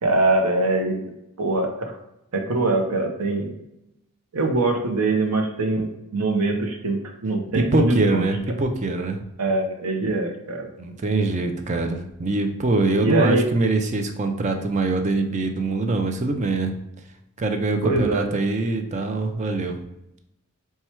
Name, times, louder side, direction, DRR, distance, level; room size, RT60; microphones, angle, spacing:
voice 1, 0.0-1.0 1.4-2.0 2.3-3.5 4.3-8.3 9.4-10.7 13.0-13.5 17.8-18.3, right 2 dB, 90° right, 3 dB, 0.7 m, -23 dB
voice 2, 7.5-9.2 10.8-16.7 17.4-19.8, right 3 dB, 30° right, 5 dB, 0.4 m, -23 dB
4.3 x 2.3 x 4.3 m, 0.87 s
head